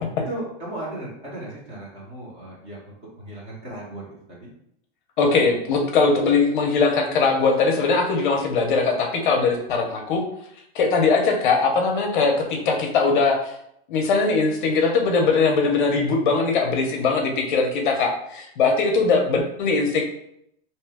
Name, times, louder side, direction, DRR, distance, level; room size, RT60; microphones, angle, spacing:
voice 1, 0.2-4.5, right 1 dB, 20° right, -5 dB, 0.6 m, -36 dB
voice 2, 5.2-10.2 10.7-13.5 13.9-20.0, left 4 dB, 55° left, 2 dB, 0.6 m, -20 dB
2.7 x 2.1 x 3.3 m, 0.73 s
supercardioid pair, 180°, 30 cm